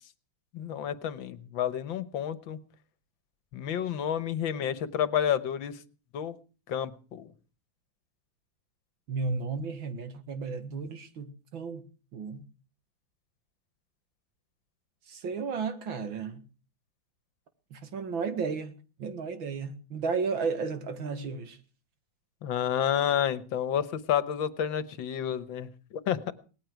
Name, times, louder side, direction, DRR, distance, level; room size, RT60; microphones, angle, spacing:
voice 1, 0.5-2.6 3.5-5.8 6.1-6.4 6.7-7.3 22.4-26.3, left 9 dB, 80° left, 1.9 m, -30 dB
voice 2, 9.1-11.8 12.1-12.4 15.1-16.4 17.7-18.7 19.0-21.6, right 5 dB, 80° right, 2.6 m, -33 dB
19.0 x 14.5 x 4.6 m
omnidirectional pair, 2.1 m